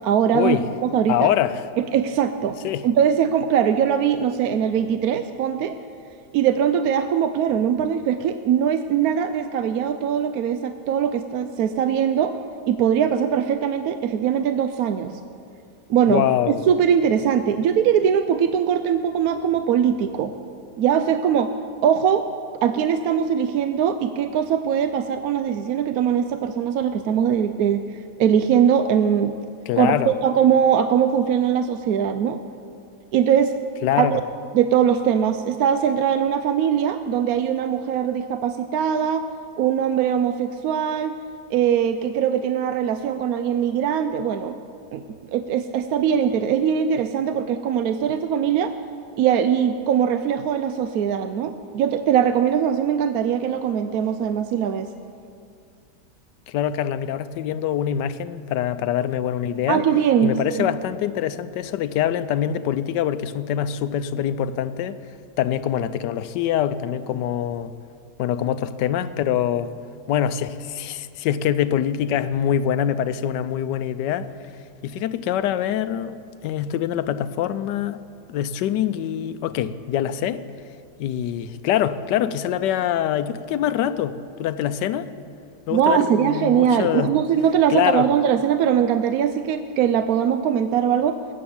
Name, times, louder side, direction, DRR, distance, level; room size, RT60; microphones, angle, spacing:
voice 1, 0.0-1.3 1.8-2.6 2.8-5.8 6.3-12.4 12.7-15.2 15.9-20.3 20.8-21.5 21.8-22.3 22.6-27.8 28.2-29.3 29.8-32.4 33.1-33.5 34.0-34.2 34.5-39.2 39.6-41.1 41.5-44.6 44.9-45.0 45.3-48.7 49.2-54.9 59.7-60.7 85.7-91.2, right 8 dB, 70° right, 0.9 m, -21 dB
voice 2, 1.1-1.7 2.6-2.8 16.1-16.6 29.7-30.1 33.8-34.1 56.5-59.8 60.2-65.0 65.4-67.7 68.2-69.7 70.1-74.3 74.8-78.0 78.3-80.4 81.0-85.1 85.7-87.1 87.7-88.1, left 10 dB, 85° left, 1.2 m, -24 dB
18.0 x 8.6 x 7.2 m
omnidirectional pair, 1.8 m